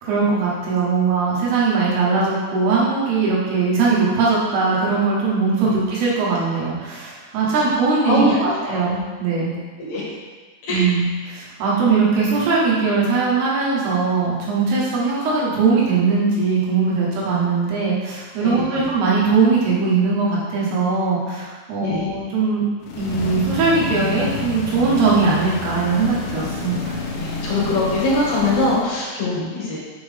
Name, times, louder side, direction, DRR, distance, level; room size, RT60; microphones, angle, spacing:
voice 1, 0.0-9.5 10.7-22.6 23.0-27.0, right 4 dB, 75° right, -5 dB, 3.3 m, -20 dB
voice 2, 8.0-8.8 9.8-10.0 10.6-10.9 18.4-18.9 21.8-22.1 27.1-29.8, left 2 dB, 55° left, -7 dB, 2.5 m, -22 dB
sound 1, 22.8-28.9, left 3 dB, 80° left, 1.9 m, -29 dB
6.4 x 5.9 x 3.5 m, 1.4 s
omnidirectional pair, 4.8 m